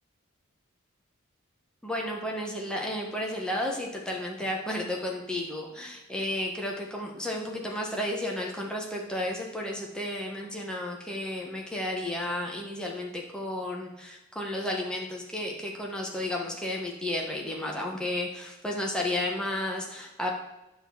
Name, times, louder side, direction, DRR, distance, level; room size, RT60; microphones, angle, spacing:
voice 1, 1.8-20.3, left 1 dB, 5° left, -1 dB, 1.3 m, -32 dB
10.0 x 4.0 x 7.2 m, 0.95 s
head